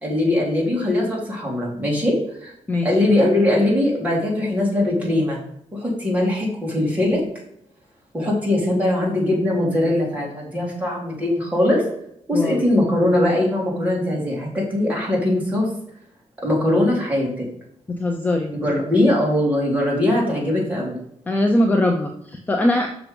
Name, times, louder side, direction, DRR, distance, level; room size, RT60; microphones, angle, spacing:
voice 1, 0.0-2.5 2.8-5.4 5.7-7.2 8.1-11.8 12.3-15.7 16.4-17.5 18.6-20.9, left 1 dB, 15° right, -4 dB, 2.6 m, -21 dB
voice 2, 17.9-18.5 21.3-22.9, left 1 dB, 15° left, 3 dB, 0.6 m, -21 dB
6.2 x 6.0 x 5.2 m, 0.74 s
wide cardioid pair, 180°, 12 cm